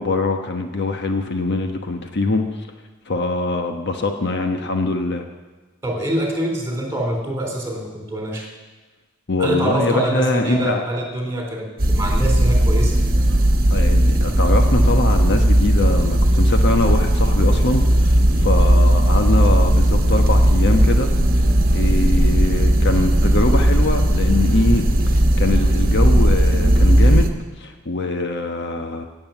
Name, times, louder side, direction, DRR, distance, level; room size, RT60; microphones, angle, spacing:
voice 1, 0.0-2.7 3.1-5.2 9.3-10.8 13.7-29.1, left 2 dB, 55° left, 5 dB, 1.2 m, -23 dB
voice 2, 5.8-8.5 9.4-13.0, right 1 dB, 15° right, 0 dB, 3.6 m, -24 dB
sound 1, 11.8-27.3, right 1 dB, 45° right, 1.3 m, -16 dB
16.5 x 7.9 x 8.9 m, 1.3 s
head